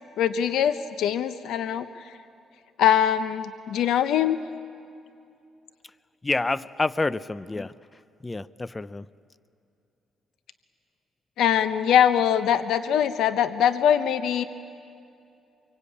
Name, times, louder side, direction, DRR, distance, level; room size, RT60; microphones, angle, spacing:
voice 1, 0.2-1.9 2.8-4.4 11.4-14.4, left 9 dB, 80° left, 11 dB, 0.8 m, -22 dB
voice 2, 6.2-7.7 8.2-9.1, left 3 dB, 20° left, 17 dB, 0.6 m, -28 dB
24.5 x 24.0 x 8.6 m, 2.5 s
cardioid pair, 90°, 0 cm